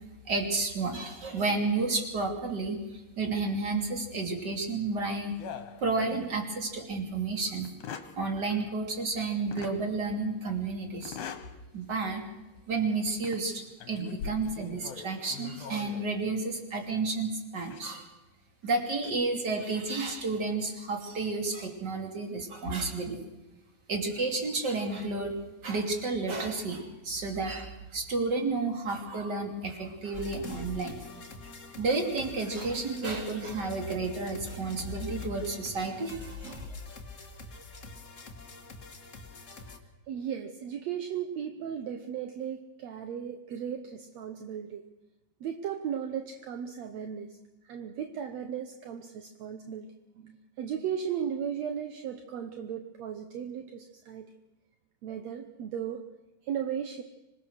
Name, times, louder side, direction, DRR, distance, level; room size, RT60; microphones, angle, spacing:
voice 1, 0.3-5.3 5.8-7.7 8.2-11.2 11.7-12.2 12.7-18.1 18.6-23.2 23.9-25.3 25.6-30.9 31.8-36.7, right 3 dB, 30° right, 3 dB, 3.0 m, -31 dB
sound 1, 5.4-6.5 6.9-7.0 7.6-8.2 9.5-9.8 11.0-11.5 12.0-12.2 13.1-13.4 13.8-16.1 17.6-17.8 18.8-19.1, left 7 dB, 65° left, 2.8 m, -42 dB
sound 2, 30.1-39.8, left 4 dB, 35° left, 1.2 m, -46 dB
voice 2, 40.1-44.9 45.4-47.4 47.6-54.3 55.0-56.1 56.4-57.0, right 8 dB, 65° right, 6 dB, 1.8 m, -36 dB
26.0 x 19.0 x 6.4 m, 1.1 s
omnidirectional pair, 4.2 m